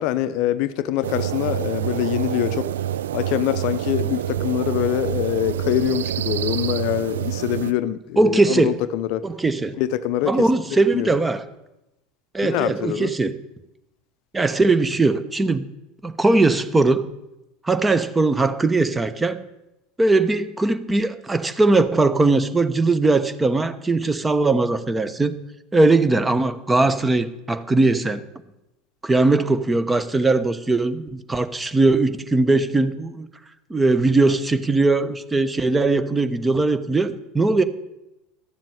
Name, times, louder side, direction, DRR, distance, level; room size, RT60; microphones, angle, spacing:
voice 1, 0.0-2.7 3.1-9.2 9.8-10.5 10.9-11.1 12.4-13.1, left 12 dB, 60° left, 14 dB, 0.6 m, -24 dB
sound 1, 1.0-7.7, right 11 dB, 75° right, 0.4 m, -27 dB
voice 2, 8.2-8.8 9.2-9.8 10.2-11.5 12.3-13.3 14.3-15.7 16.0-17.1 17.6-19.4 20.0-25.4 25.7-28.2 29.0-33.3 33.7-37.6, right 3 dB, 15° right, 12 dB, 1.0 m, -20 dB
12.0 x 7.4 x 9.8 m, 0.93 s
hypercardioid pair, 80°, 0 cm